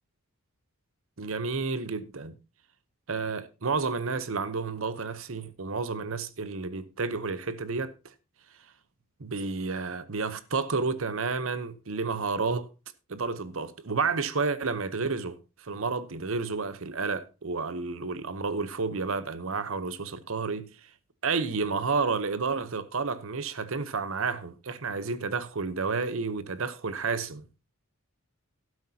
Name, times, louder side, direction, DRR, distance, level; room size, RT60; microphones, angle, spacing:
voice 1, 1.2-2.4 3.1-7.9 9.2-12.7 13.1-20.7 21.2-27.4, right 4 dB, 60° right, 0.9 m, -31 dB
12.5 x 11.5 x 2.8 m
head